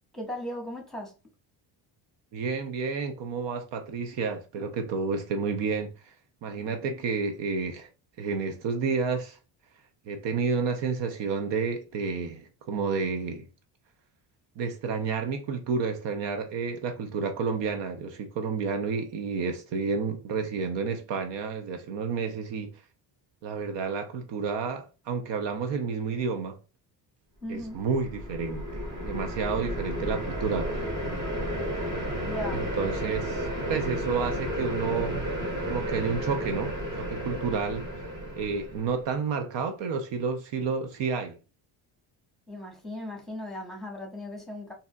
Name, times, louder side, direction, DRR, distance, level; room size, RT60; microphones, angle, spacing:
voice 1, 0.1-1.1 27.4-27.8 32.2-32.7 42.5-44.7, left 1 dB, ahead, 1.4 m, -37 dB
voice 2, 2.3-6.1 6.4-7.9 8.2-9.4 10.1-13.5 14.6-22.8 23.4-26.6 27.5-30.9 32.5-35.2 35.7-37.9 38.4-41.3, right 5 dB, 65° right, 0.7 m, -30 dB
sound 1, 27.6-39.0, equal, 35° right, 1.9 m, -32 dB
3.8 x 2.7 x 2.3 m
cardioid pair, 95°, 47 cm